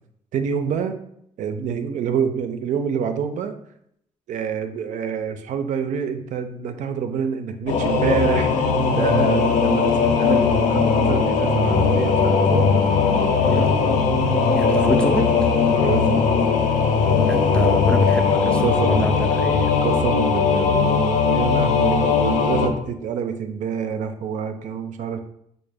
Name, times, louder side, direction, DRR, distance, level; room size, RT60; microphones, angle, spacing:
voice 1, 0.3-1.0 1.4-3.5 4.3-13.7 14.7-15.1 15.7-16.3 17.6-17.8 18.6-19.2 19.8-25.2, right 7 dB, 80° right, 8 dB, 0.4 m, -27 dB
Singing / Musical instrument, 7.7-22.7, left 5 dB, 85° left, 0.5 m, -19 dB
voice 2, 13.4-14.0 14.6-15.2 17.3-19.8, left 1 dB, 10° left, 4 dB, 0.3 m, -26 dB
4.0 x 2.0 x 3.3 m, 0.73 s
cardioid pair, 110°, 13 cm